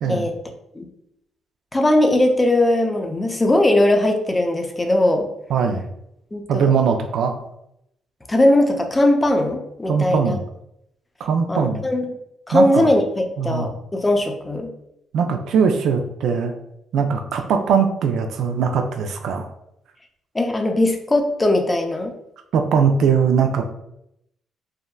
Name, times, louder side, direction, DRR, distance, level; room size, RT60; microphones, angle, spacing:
voice 1, 1.7-5.3 6.3-6.7 8.3-10.4 11.5-12.1 12.5-14.7 20.3-22.1, left 1 dB, 20° left, 4 dB, 0.4 m, -19 dB
voice 2, 5.5-5.8 6.5-7.4 9.9-10.4 11.2-11.8 12.5-12.9 13.4-13.7 15.1-16.5 16.9-19.5 22.5-23.6, right 6 dB, 75° right, 5 dB, 0.3 m, -20 dB
3.6 x 2.1 x 2.2 m, 0.80 s
cardioid pair, 90°, 0 cm